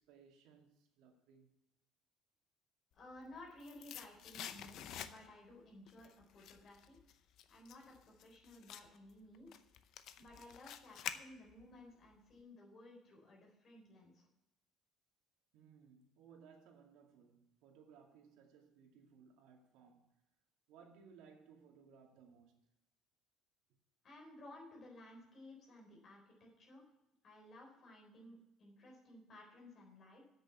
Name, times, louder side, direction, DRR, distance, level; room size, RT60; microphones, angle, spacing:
voice 1, 0.0-1.5 15.5-20.2 20.7-22.5, right 6 dB, 80° right, 2.2 m, -62 dB
voice 2, 3.0-7.0 7.5-9.6 10.2-14.3 24.0-26.8 27.2-30.2, left 1 dB, 35° left, 3.9 m, -57 dB
sound 1, 3.1-5.5 5.9-11.7 12.1-12.2, left 10 dB, 55° left, 0.6 m, -49 dB
8.1 x 6.7 x 8.2 m
cardioid pair, 145°, 0 cm